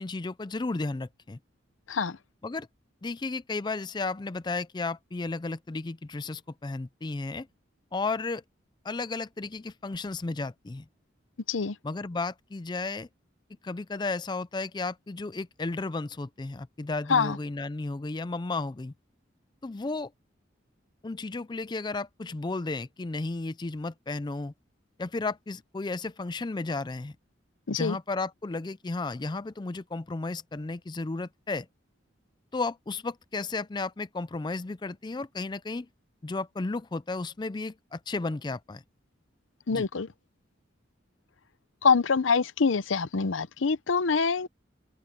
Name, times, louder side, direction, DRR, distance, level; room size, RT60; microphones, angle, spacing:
voice 1, 0.0-1.4 2.4-2.7 3.0-7.5 7.9-8.4 8.8-10.8 11.8-13.1 13.6-18.9 19.6-20.1 21.0-24.5 25.0-27.2 27.7-31.7 32.5-35.9 36.2-38.8 39.7-39.8, left 3 dB, 25° left, 0.4 m, -33 dB
voice 2, 39.7-40.1 41.8-44.5, left 5 dB, 80° left, 0.7 m, -25 dB
open air
head